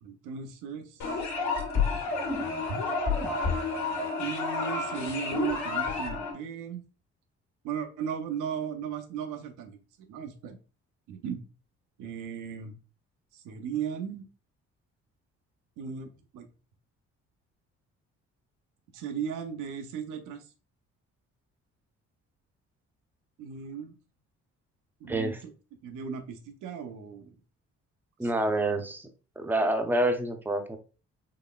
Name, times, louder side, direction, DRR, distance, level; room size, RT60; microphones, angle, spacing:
voice 1, 0.0-1.2 4.2-6.8 7.6-9.8 10.1-10.6 11.1-11.4 12.0-12.7 13.3-14.3 15.8-16.5 18.9-20.4 23.4-23.9 25.0-25.5 25.8-27.3 28.2-28.5, right 7 dB, 90° right, 5 dB, 0.7 m, -36 dB
sound 1, 1.0-6.3, left 4 dB, 70° left, 1.3 m, -30 dB
voice 2, 25.1-25.4 28.2-29.1 29.4-30.8, right 1 dB, 5° right, 6 dB, 0.5 m, -27 dB
3.9 x 3.1 x 2.2 m, 0.35 s
cardioid pair, 90°, 30 cm